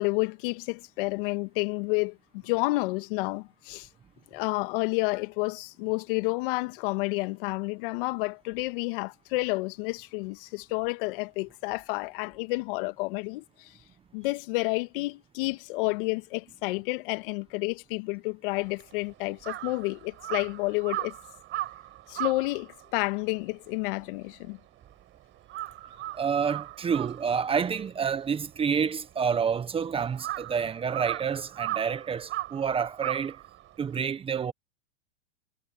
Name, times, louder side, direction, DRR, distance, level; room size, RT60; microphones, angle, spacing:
voice 1, 0.0-2.2 2.4-3.9 4.3-13.7 14.1-21.1 22.1-24.6, left 25 dB, 55° left, 1.9 m, -30 dB
Crow, 18.5-25.0 25.3-34.0, right 15 dB, 35° right, 6.1 m, -38 dB
voice 2, 26.1-33.4 33.8-34.5, right 6 dB, 15° right, 1.2 m, -28 dB
hypercardioid pair, 130°, 32 cm